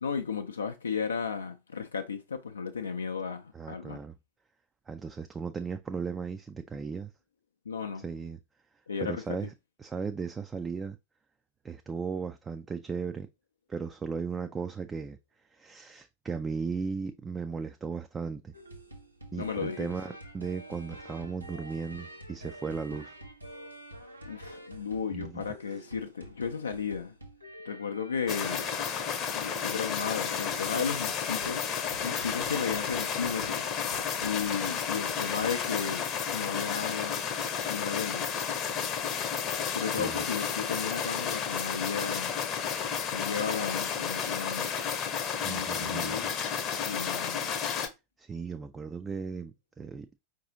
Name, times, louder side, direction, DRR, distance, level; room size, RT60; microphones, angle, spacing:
voice 1, 0.0-4.0 7.7-8.0 8.9-9.4 19.3-19.9 24.3-27.1 27.7-28.7 29.3-31.6 32.0-33.6 34.2-37.2 37.7-38.4 38.8-39.1 39.7-42.3 43.1-44.7 45.4-46.3 46.8-47.5, left 6 dB, 75° left, 0.4 m, -34 dB
voice 2, 3.5-4.1 4.9-7.1 8.0-8.4 9.0-9.5 9.8-11.0 11.6-13.3 13.7-15.2 15.5-18.5 19.3-23.1 25.1-25.4 39.8-40.2 45.4-46.3 48.2-50.1, right 5 dB, 15° right, 0.3 m, -36 dB
sound 1, 18.5-36.1 36.4-36.7, right 1 dB, 85° right, 0.8 m, -48 dB
sound 2, 28.3-47.9, left 7 dB, 30° left, 0.7 m, -32 dB
4.7 x 2.6 x 3.8 m
figure-of-eight pair, 90°, 0 cm